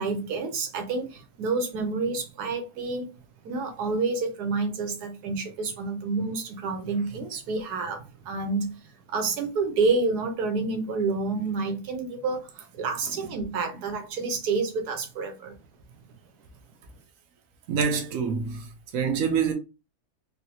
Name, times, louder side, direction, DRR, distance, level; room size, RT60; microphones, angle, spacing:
voice 1, 0.0-3.1 3.4-8.7 9.1-15.5, right 4 dB, 80° right, 1.3 m, -29 dB
voice 2, 17.7-18.7 18.9-19.5, right 6 dB, 65° right, 1.0 m, -26 dB
3.9 x 2.0 x 2.8 m
omnidirectional pair, 1.7 m